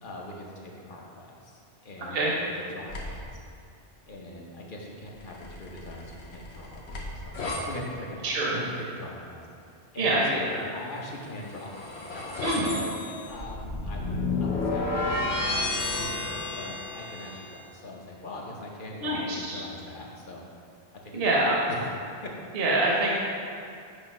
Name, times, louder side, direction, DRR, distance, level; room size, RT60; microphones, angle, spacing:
voice 1, 0.0-3.4 4.1-20.4 21.0-21.4 21.7-21.9 22.2-22.3, left 1 dB, 55° left, -2 dB, 1.1 m, -42 dB
sound 1, 2.9-3.3 5.2-7.6 11.1-17.5, left 2 dB, 85° left, 1.2 m, -32 dB
voice 2, 8.2-8.6 10.0-10.6 12.4-12.7 19.0-19.6 21.1-21.6 22.5-23.1, right 2 dB, 65° right, -4 dB, 1.0 m, -25 dB
8.2 x 2.9 x 5.3 m, 2.4 s
omnidirectional pair, 1.1 m